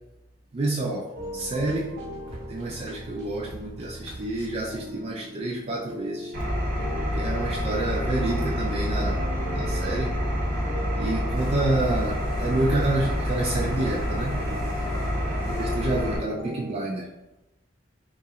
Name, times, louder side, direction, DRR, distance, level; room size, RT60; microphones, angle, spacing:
voice 1, 0.5-1.0 1.3-1.9 2.5-6.3 7.2-10.1 11.0-14.4 15.6-17.0, right 2 dB, 35° right, -3 dB, 0.3 m, -28 dB
sound 1, 1.1-13.8 14.3-16.8, equal, 75° right, 1.0 m, -40 dB
Engine, 6.3-16.2, equal, 50° right, 0.7 m, -27 dB
sound 2, 11.3-16.1, left 1 dB, 55° left, 0.6 m, -39 dB
3.0 x 2.4 x 2.7 m, 0.94 s
head